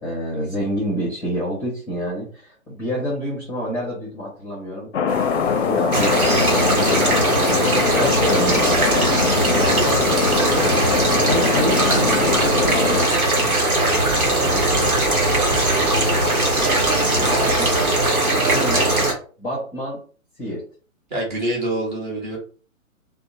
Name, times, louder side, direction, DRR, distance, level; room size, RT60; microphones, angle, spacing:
voice 1, 0.0-4.9 5.4-6.9 7.4-7.5 7.9-8.9 11.1-13.2 14.3-14.9 17.1-17.7 18.4-18.9 19.4-20.0 20.4-20.6, equal, 5° left, -5 dB, 0.6 m, -28 dB
Thunder, 4.9-13.1, left 6 dB, 55° left, 0.5 m, -23 dB
sound 1, 5.1-18.1, right 2 dB, 55° right, 1.4 m, -35 dB
sound 2, 5.9-19.1, right 1 dB, 85° right, 0.9 m, -19 dB
voice 2, 9.6-10.0 15.4-16.4 16.9-17.3 21.1-22.4, right 1 dB, 35° right, -1 dB, 1.1 m, -28 dB
2.7 x 2.1 x 2.7 m, 0.40 s
figure-of-eight pair, 125°, 42 cm